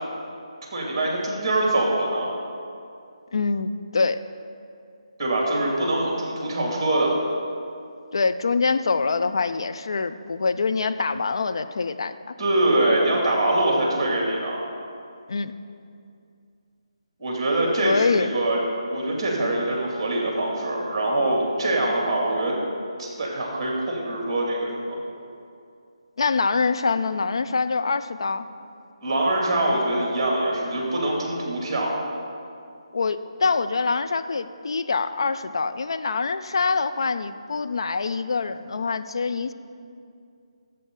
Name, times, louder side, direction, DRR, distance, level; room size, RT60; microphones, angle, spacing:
voice 1, 0.7-2.3 5.2-7.1 12.4-14.6 17.2-18.6 18.9-22.5 23.0-25.0 29.0-31.9, right 1 dB, 20° right, -2 dB, 2.8 m, -24 dB
voice 2, 3.3-4.2 8.1-12.3 15.3-15.5 17.8-18.3 26.2-28.5 32.9-39.5, left 4 dB, 50° left, 10 dB, 0.5 m, -25 dB
18.0 x 7.7 x 4.0 m, 2.5 s
figure-of-eight pair, 150°, 3 cm